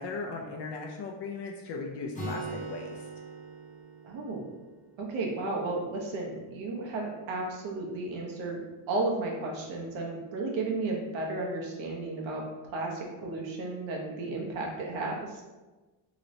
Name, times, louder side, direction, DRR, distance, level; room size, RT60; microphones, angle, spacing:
voice 1, 0.0-3.0, left 3 dB, 65° left, 0 dB, 0.5 m, -37 dB
Acoustic guitar, 2.1-5.9, right 2 dB, 15° left, 0.6 m, -41 dB
voice 2, 4.0-4.4 5.0-12.4 12.7-15.4, right 2 dB, 75° right, -1 dB, 0.9 m, -33 dB
3.0 x 3.0 x 2.6 m, 1.2 s
cardioid pair, 160°, 46 cm